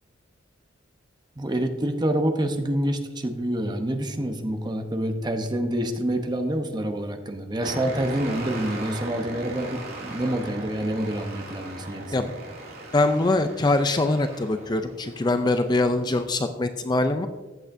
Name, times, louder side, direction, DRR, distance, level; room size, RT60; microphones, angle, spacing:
voice 1, 1.4-12.3, right 1 dB, 20° right, 5 dB, 0.8 m, -27 dB
sound 1, 7.6-16.3, right 2 dB, 50° right, 2.5 m, -38 dB
voice 2, 12.9-17.3, left 2 dB, 20° left, 8 dB, 0.4 m, -23 dB
15.0 x 8.4 x 2.6 m, 1.3 s
head